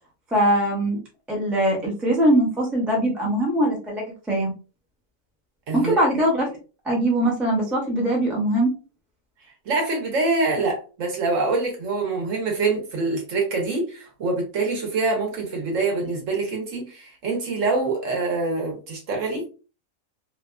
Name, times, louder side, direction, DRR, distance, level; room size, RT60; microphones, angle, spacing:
voice 1, 0.3-1.0 1.3-4.5 5.7-6.5 6.8-8.7, right 1 dB, ahead, -2 dB, 0.4 m, -21 dB
voice 2, 9.7-19.5, right 3 dB, 60° right, 1 dB, 1.1 m, -25 dB
2.7 x 2.4 x 2.3 m, 0.35 s
omnidirectional pair, 1.6 m